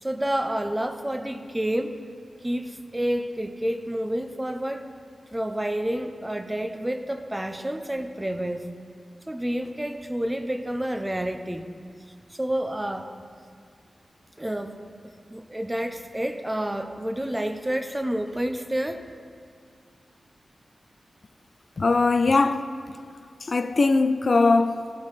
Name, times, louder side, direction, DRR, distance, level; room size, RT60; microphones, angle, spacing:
voice 1, 0.0-2.0 2.4-4.9 5.3-8.7 9.3-11.7 12.3-13.1 14.4-19.0, right 1 dB, 15° right, 0.5 m, -29 dB
voice 2, 21.8-23.0 23.4-24.9, left 3 dB, 50° left, 0.3 m, -21 dB
14.5 x 5.1 x 4.1 m
wide cardioid pair, 95°, 0 cm